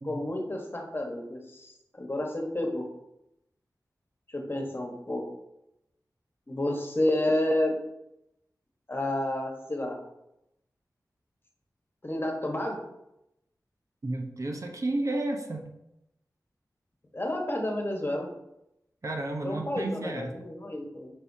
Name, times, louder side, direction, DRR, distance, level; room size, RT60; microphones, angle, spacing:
voice 1, 0.0-1.7 2.0-2.8 4.3-5.2 6.5-7.8 8.9-10.0 12.0-12.8 17.1-18.3 19.4-21.1, left 1 dB, 35° left, 1 dB, 1.3 m, -30 dB
voice 2, 14.0-15.7 19.0-20.4, right 2 dB, 50° right, 2 dB, 1.0 m, -32 dB
7.8 x 5.5 x 2.8 m, 0.86 s
wide cardioid pair, 75°, 7 cm